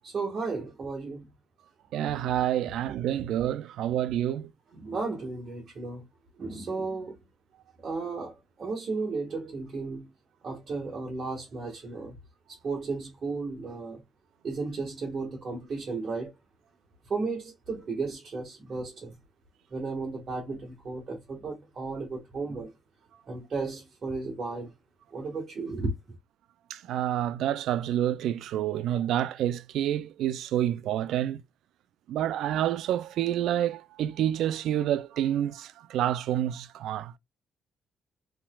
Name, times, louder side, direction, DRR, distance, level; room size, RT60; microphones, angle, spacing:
voice 1, 0.0-1.2 4.7-6.0 6.4-7.2 7.8-10.1 10.4-12.2 12.5-14.0 14.4-16.3 17.1-19.1 19.7-22.7 23.3-24.7 25.1-25.9, right 3 dB, 45° right, 1.5 m, -34 dB
voice 2, 1.9-4.5 26.7-31.4 32.1-37.2, right 11 dB, 80° right, 0.3 m, -28 dB
3.5 x 3.2 x 2.3 m
cardioid pair, 90°, 0 cm